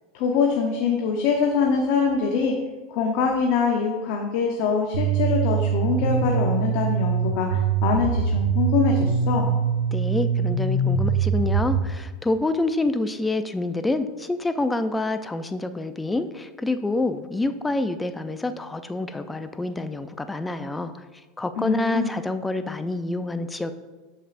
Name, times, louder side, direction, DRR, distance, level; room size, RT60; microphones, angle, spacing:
voice 1, 0.1-2.5 2.9-9.5 21.6-22.2, left 5 dB, 60° left, 1 dB, 0.7 m, -24 dB
sound 1, 4.9-11.8, right 6 dB, 85° right, 0.7 m, -23 dB
voice 2, 9.9-21.0 21.4-23.7, left 2 dB, 10° left, 10 dB, 0.4 m, -27 dB
7.0 x 5.4 x 2.5 m, 1.2 s
supercardioid pair, 115°, 0 cm